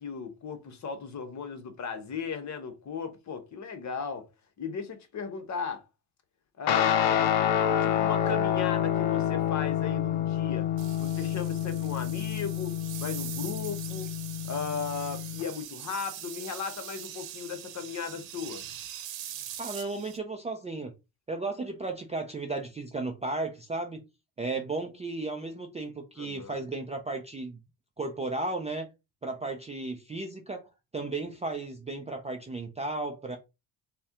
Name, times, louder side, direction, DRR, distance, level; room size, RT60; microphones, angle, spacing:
voice 1, 0.0-4.3 4.6-5.8 6.6-7.4 7.7-10.7 11.0-14.1 14.4-18.7 26.2-26.5, left 6 dB, 40° left, 0.8 m, -36 dB
Guitar, 6.7-15.4, left 10 dB, 80° left, 0.6 m, -28 dB
sound 1, 10.8-20.2, right 10 dB, 80° right, 0.8 m, -42 dB
voice 2, 19.6-20.9 21.3-24.0 24.4-27.6 28.0-28.9 29.2-30.7 30.9-33.4, right 3 dB, 15° right, 0.4 m, -34 dB
4.1 x 2.2 x 3.5 m
cardioid pair, 120°, 44 cm